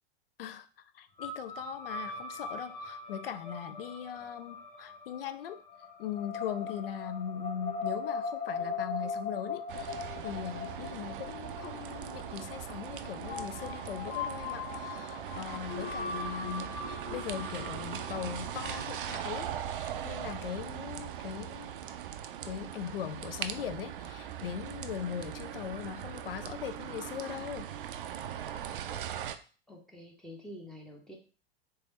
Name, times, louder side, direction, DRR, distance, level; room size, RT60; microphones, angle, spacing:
voice 1, 0.9-5.6 6.0-21.7 22.4-27.7, left 9 dB, 65° left, 11 dB, 0.5 m, -40 dB
sound 1, 1.2-19.3, left 4 dB, 25° left, 0.9 m, -40 dB
sound 2, 9.7-29.4, right 10 dB, 60° right, 0.4 m, -40 dB
voice 2, 29.7-31.2, left 1 dB, ahead, -1 dB, 0.7 m, -47 dB
3.3 x 3.2 x 3.1 m, 0.38 s
figure-of-eight pair, 95°, 31 cm